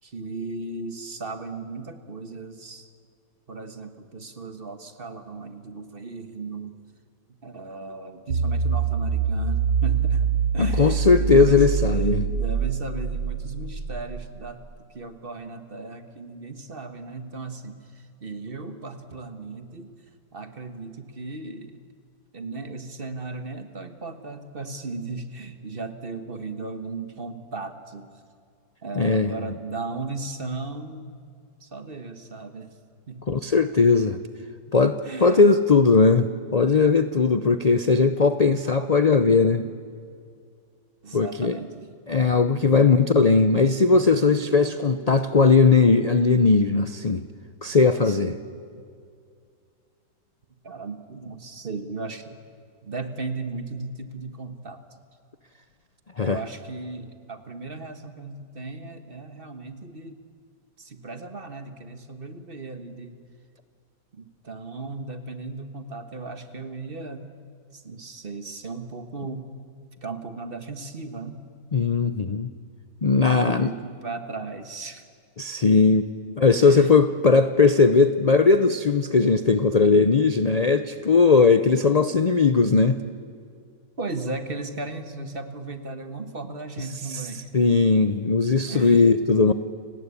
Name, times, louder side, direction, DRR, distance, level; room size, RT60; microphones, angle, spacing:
voice 1, 0.0-2.9 3.5-6.8 7.4-19.9 20.3-21.8 22.3-28.2 28.8-31.2 31.6-32.7 33.1-33.2 34.4-34.5 35.0-35.5 39.8-40.0 41.0-42.2 42.9-43.4 43.7-44.9 48.0-48.8 50.6-52.4 52.8-54.8 56.2-60.2 60.8-63.2 64.1-67.3 67.7-69.5 70.0-71.5 73.3-75.0 76.2-76.9 84.0-87.5 88.7-89.3, right 3 dB, 35° right, 9 dB, 1.5 m, -36 dB
sound 1, 8.3-14.5, right 6 dB, 60° right, 1.3 m, -25 dB
voice 2, 10.6-12.3 29.0-29.3 33.3-34.2 34.7-39.6 41.1-41.6 42.1-47.2 47.6-48.3 56.2-56.4 71.7-72.5 73.0-73.7 75.4-76.1 76.4-83.0 87.5-89.5, left 4 dB, 55° left, 10 dB, 0.4 m, -19 dB
30.0 x 18.0 x 8.5 m, 2.3 s
omnidirectional pair, 1.8 m